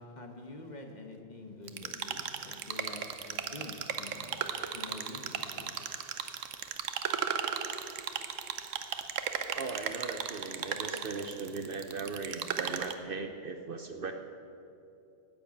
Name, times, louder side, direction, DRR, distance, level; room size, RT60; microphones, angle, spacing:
voice 1, 0.0-4.4 4.7-5.8, left 2 dB, 40° left, 4 dB, 1.2 m, -46 dB
sound 1, 1.7-12.9, right 8 dB, 85° right, 1.1 m, -36 dB
voice 2, 9.5-14.1, right 4 dB, 55° right, 6 dB, 0.8 m, -38 dB
10.5 x 8.9 x 8.5 m, 2.7 s
omnidirectional pair, 1.3 m